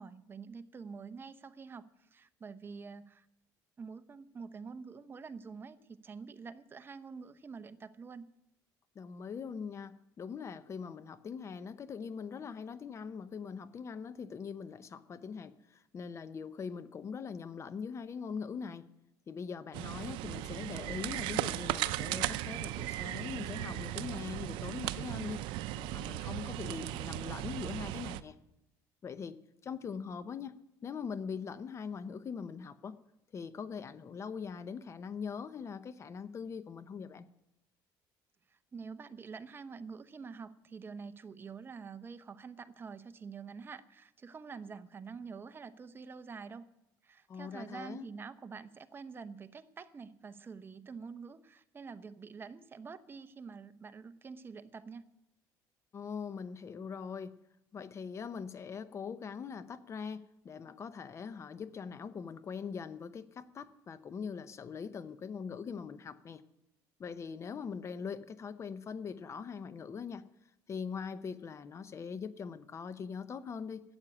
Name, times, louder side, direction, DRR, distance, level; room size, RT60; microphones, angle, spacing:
voice 1, 0.0-3.3 3.8-8.3 38.5-46.7 47.0-55.0, right 5 dB, 25° right, 12 dB, 0.8 m, -47 dB
voice 2, 8.9-18.8 19.3-25.4 25.8-28.4 29.0-29.4 29.6-30.5 30.8-33.0 33.3-37.2 47.3-48.1 55.9-57.3 57.7-66.4 67.0-70.2 70.7-73.8, left 6 dB, 35° left, 14 dB, 0.8 m, -42 dB
sound 1, 19.7-28.2, right 15 dB, 80° right, 0.6 m, -37 dB
12.5 x 8.3 x 9.9 m, 0.84 s
cardioid pair, 115°, 8 cm